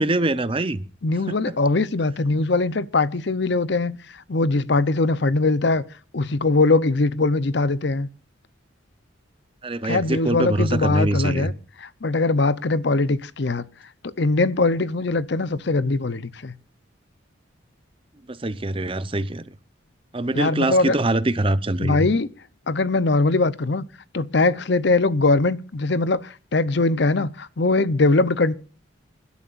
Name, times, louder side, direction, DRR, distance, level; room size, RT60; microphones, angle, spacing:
voice 1, 0.0-0.8 1.3-1.4 9.6-11.5 18.3-19.4 20.1-22.0, right 1 dB, 25° right, 0.8 m, -23 dB
voice 2, 1.0-5.8 6.1-8.1 9.8-11.5 11.8-13.6 14.0-16.5 20.3-21.0 21.8-22.3 22.7-23.8 24.1-28.5, left 3 dB, 60° left, 0.7 m, -21 dB
27.0 x 12.5 x 2.5 m
head